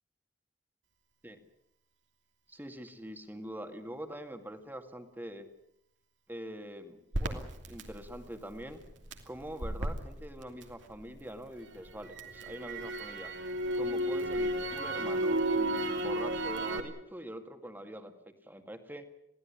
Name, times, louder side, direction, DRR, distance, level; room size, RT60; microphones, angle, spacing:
voice 1, 2.5-5.5 6.3-8.8 9.3-13.3 13.7-19.0, equal, 10° right, 7 dB, 2.1 m, -44 dB
Crackle, 7.1-11.3 11.6-16.8, right 1 dB, 90° right, 2.8 m, -33 dB
22.5 x 16.5 x 9.9 m, 0.81 s
head